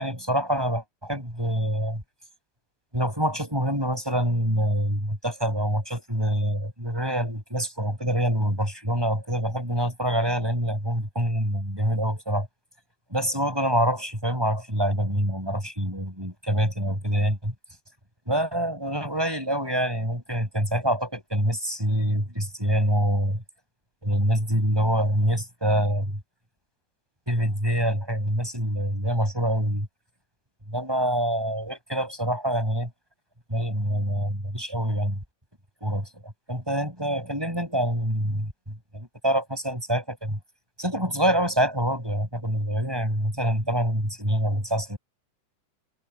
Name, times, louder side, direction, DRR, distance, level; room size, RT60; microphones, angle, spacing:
voice 1, 0.0-2.0 2.9-12.5 13.1-17.5 18.3-23.4 24.0-26.2 27.3-29.9 30.7-32.9 33.5-35.2 35.8-38.5 38.9-40.4 40.8-45.0, equal, 5° right, 7.5 m, -26 dB
omnidirectional pair, 3.4 m